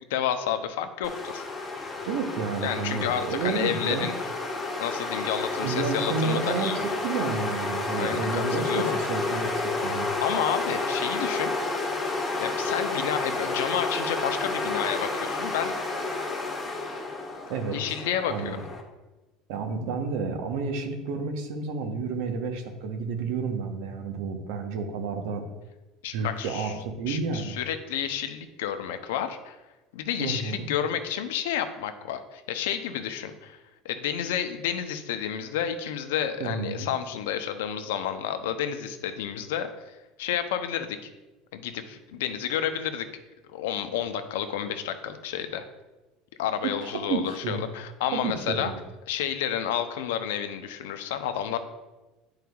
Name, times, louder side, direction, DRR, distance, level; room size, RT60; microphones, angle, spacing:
voice 1, 0.1-1.4 2.6-4.1 4.8-6.9 8.0-9.0 10.2-11.5 12.4-15.7 17.7-18.6 26.0-26.7 27.1-29.6 29.9-33.6 33.8-39.7 40.2-41.0 41.5-43.1 43.5-45.7 46.4-48.7 49.1-51.6, left 9 dB, 85° left, 8 dB, 0.5 m, -30 dB
sound 1, 1.0-18.8, left 3 dB, 15° left, 1.2 m, -30 dB
voice 2, 2.1-4.1 5.6-9.5 9.8-10.1 17.5-18.0 18.3-18.6 19.5-25.4 26.1-27.6 30.2-30.7 36.4-36.9 46.6-47.6 48.1-48.8, right 5 dB, 75° right, 5 dB, 0.8 m, -31 dB
9.2 x 4.7 x 2.3 m, 1.1 s
supercardioid pair, 105°, 0 cm